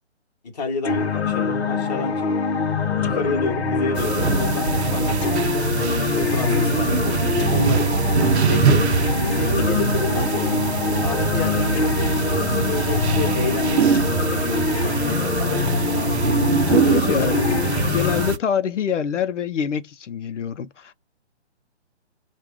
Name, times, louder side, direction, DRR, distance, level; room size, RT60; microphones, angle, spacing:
voice 1, 0.4-2.3 3.0-5.8 6.0-7.9 8.5-8.8 9.3-10.6 11.0-16.1 16.8-17.6, left 3 dB, 35° left, 1.2 m, -30 dB
sound 1, 0.8-18.3, left 5 dB, 65° left, 0.9 m, -24 dB
sound 2, 4.0-18.4, right 6 dB, 65° right, 0.6 m, -23 dB
voice 2, 16.7-17.4 17.9-20.9, left 8 dB, 90° left, 0.7 m, -25 dB
4.7 x 2.4 x 3.6 m
hypercardioid pair, 170°, 35 cm